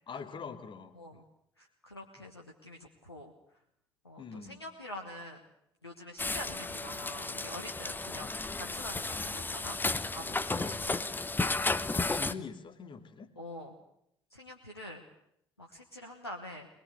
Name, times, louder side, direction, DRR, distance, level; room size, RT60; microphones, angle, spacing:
voice 1, 0.1-1.2 2.2-2.3 4.2-4.6 10.4-11.1 11.9-13.3, left 5 dB, 40° left, 8 dB, 2.5 m, -44 dB
voice 2, 1.6-3.3 4.0-5.4 5.8-9.8 10.1-11.0 13.4-13.7 14.3-15.0 15.6-16.7, left 1 dB, 90° left, 2 dB, 1.3 m, -45 dB
sound 1, 6.2-12.3, left 3 dB, 15° left, 1.1 m, -33 dB
22.0 x 21.5 x 8.2 m, 0.74 s
figure-of-eight pair, 50°, 13 cm